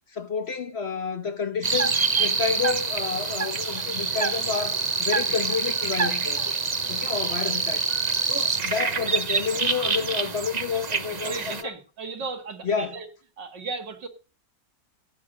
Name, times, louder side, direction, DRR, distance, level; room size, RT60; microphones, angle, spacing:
voice 1, 0.1-6.4 6.9-7.8 8.3-11.7 12.6-13.0, left 6 dB, 40° left, 1.4 m, -30 dB
sound 1, 1.6-11.6, right 5 dB, 30° right, 0.8 m, -26 dB
voice 2, 11.1-13.1 13.4-14.1, right 4 dB, 80° right, 2.7 m, -35 dB
15.5 x 9.1 x 6.6 m
omnidirectional pair, 1.9 m